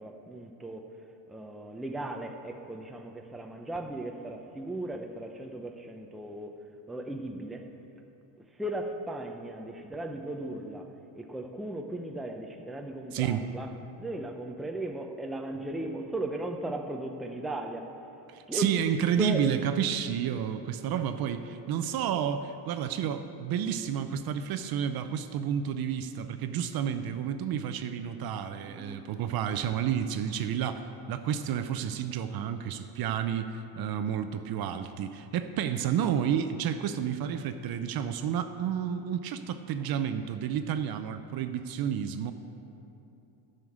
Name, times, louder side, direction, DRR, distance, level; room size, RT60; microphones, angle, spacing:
voice 1, 0.0-6.6 6.9-7.7 8.5-10.9 11.1-13.7 14.0-18.0 18.5-18.7 19.2-19.5 28.7-29.1 39.8-39.9, right 1 dB, ahead, 3 dB, 0.6 m, -37 dB
voice 2, 13.1-13.4 18.3-42.3, right 9 dB, 50° right, 9 dB, 0.7 m, -30 dB
11.0 x 6.7 x 8.5 m, 2.8 s
cardioid pair, 120°, 47 cm